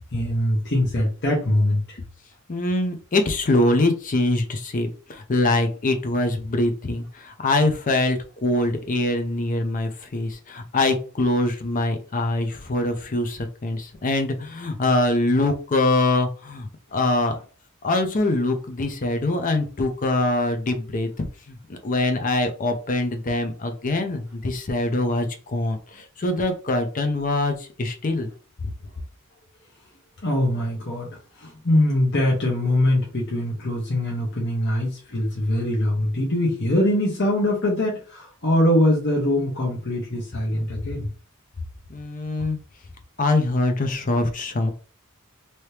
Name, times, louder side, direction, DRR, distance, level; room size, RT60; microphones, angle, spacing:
voice 1, 0.0-2.0 30.2-31.1 31.4-41.1, left 1 dB, 55° left, -3 dB, 1.1 m, -22 dB
voice 2, 2.5-17.4 17.8-28.3 28.6-28.7 41.9-42.6 43.2-44.7, left 2 dB, 40° left, 7 dB, 0.6 m, -23 dB
3.1 x 2.8 x 3.2 m, 0.38 s
head